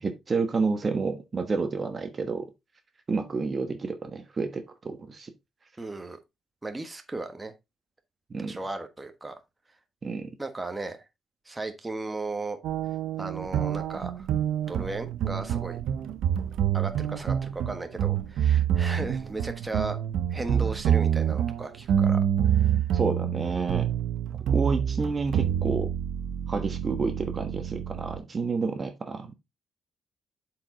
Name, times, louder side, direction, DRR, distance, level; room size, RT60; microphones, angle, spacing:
voice 1, 0.0-2.5 3.1-5.3 8.3-8.6 10.0-10.3 22.9-23.9 24.5-25.9 26.5-29.3, right 4 dB, 35° right, 1.2 m, -29 dB
voice 2, 5.8-6.2 6.6-7.5 8.5-9.4 10.4-11.0 11.5-12.6 13.2-14.3 14.7-15.8 16.7-20.0 20.3-22.2 22.5-22.8, right 2 dB, 15° right, 1.2 m, -35 dB
sound 1, 12.6-28.2, right 9 dB, 80° right, 0.7 m, -27 dB
7.6 x 4.9 x 3.7 m
cardioid pair, 90°, 0 cm